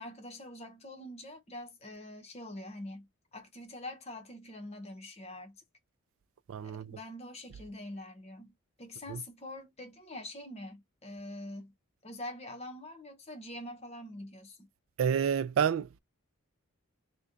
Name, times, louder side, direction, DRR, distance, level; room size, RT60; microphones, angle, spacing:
voice 1, 0.0-5.6 6.6-11.8 12.0-14.7, left 1 dB, 30° left, 0.8 m, -45 dB
voice 2, 6.5-7.0 9.1-9.2 15.0-16.0, right 7 dB, 65° right, 0.3 m, -29 dB
3.4 x 2.2 x 3.8 m
head